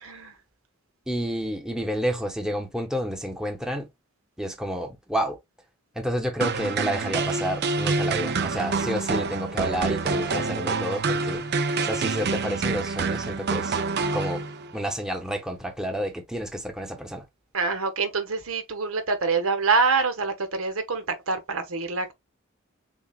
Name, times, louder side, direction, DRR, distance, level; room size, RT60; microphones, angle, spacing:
voice 1, 0.0-0.3 17.5-22.1, right 4 dB, 85° right, 1.3 m, -25 dB
voice 2, 1.1-3.9 4.4-5.4 5.9-11.5 11.8-13.8 14.1-14.5 14.7-17.2, equal, 5° right, 0.9 m, -30 dB
sound 1, 6.4-14.8, right 4 dB, 55° right, 0.6 m, -27 dB
7.1 x 2.4 x 2.4 m
head